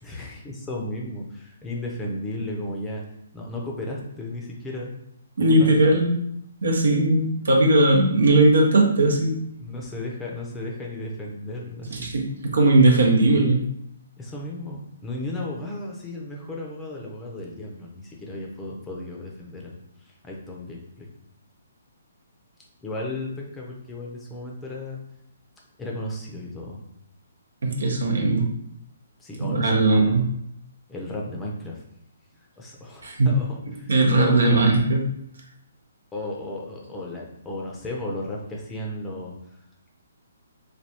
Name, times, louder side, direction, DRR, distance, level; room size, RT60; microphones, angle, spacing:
voice 1, 0.0-3.0 3.3-4.9 5.4-5.8 9.6-12.1 14.2-19.8 20.2-21.1 22.8-25.0 25.8-26.8 29.2-30.2 30.9-31.8 32.6-33.9 34.2-34.4 36.1-39.3, left 1 dB, 10° left, -2 dB, 0.5 m, -34 dB
voice 2, 5.4-6.2 6.6-9.5 11.9-13.6 27.6-28.5 29.4-30.2 33.0-33.3 33.9-35.0, right 2 dB, 80° right, 1 dB, 0.7 m, -19 dB
3.3 x 2.3 x 2.8 m, 0.73 s
hypercardioid pair, 145°, 0 cm